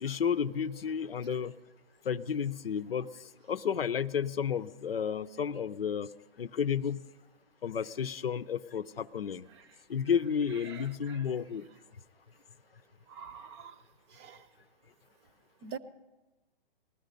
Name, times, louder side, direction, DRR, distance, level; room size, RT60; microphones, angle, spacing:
voice 1, 0.0-1.5 2.1-3.1 3.5-6.1 6.4-7.0 7.6-9.4 9.9-11.6, left 7 dB, 80° left, 0.7 m, -32 dB
voice 2, 10.6-11.2 13.1-13.7 14.2-14.4 15.6-15.8, right 7 dB, 30° right, 0.7 m, -44 dB
20.0 x 13.5 x 5.3 m
hypercardioid pair, 140°, 29 cm